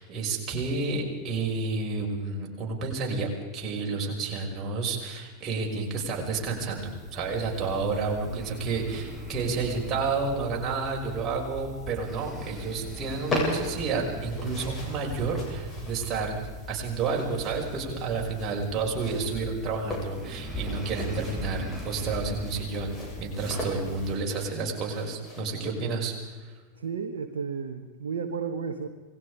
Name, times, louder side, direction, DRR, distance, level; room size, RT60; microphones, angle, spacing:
voice 1, 0.0-16.4 16.7-26.5, right 4 dB, 30° right, -1 dB, 5.9 m, -30 dB
sound 1, 5.7-24.1, equal, 5° right, 6.0 m, -40 dB
sound 2, 13.0-25.7, left 1 dB, 20° left, 7.7 m, -38 dB
voice 2, 20.5-20.8 26.8-28.9, right 6 dB, 65° right, 5 dB, 1.5 m, -34 dB
28.0 x 20.0 x 5.1 m, 1.3 s
figure-of-eight pair, 90°, 0 cm